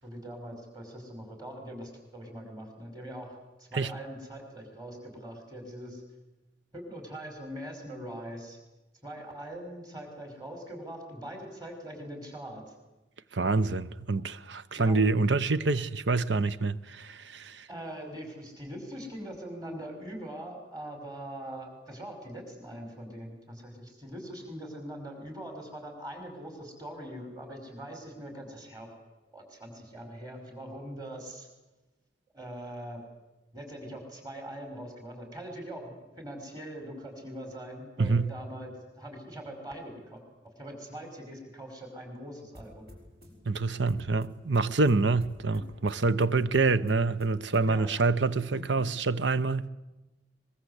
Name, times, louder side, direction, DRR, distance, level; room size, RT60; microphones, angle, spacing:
voice 1, 0.0-6.0 6.7-8.6 9.0-12.7 14.8-15.0 17.7-28.9 29.3-31.5 32.3-33.0 33.5-42.9 45.5-45.6 47.6-47.9 48.5-48.6, right 1 dB, 20° right, 5.4 m, -42 dB
voice 2, 13.3-17.7 38.0-38.3 43.5-49.7, right 3 dB, 70° right, 0.9 m, -26 dB
sound 1, 42.5-47.9, left 1 dB, 55° right, 6.2 m, -54 dB
23.0 x 22.0 x 8.2 m
head